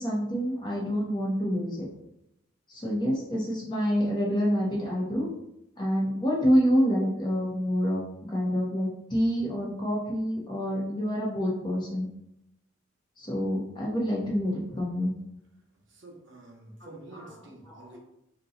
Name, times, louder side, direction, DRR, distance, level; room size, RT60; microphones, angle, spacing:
voice 1, 0.0-1.8 2.7-5.3 5.8-12.1 13.2-15.1 16.8-18.0, equal, 20° left, -4 dB, 0.7 m, -27 dB
voice 2, 15.7-18.0, right 2 dB, 60° right, -1 dB, 0.7 m, -48 dB
2.7 x 2.2 x 3.7 m, 0.83 s
head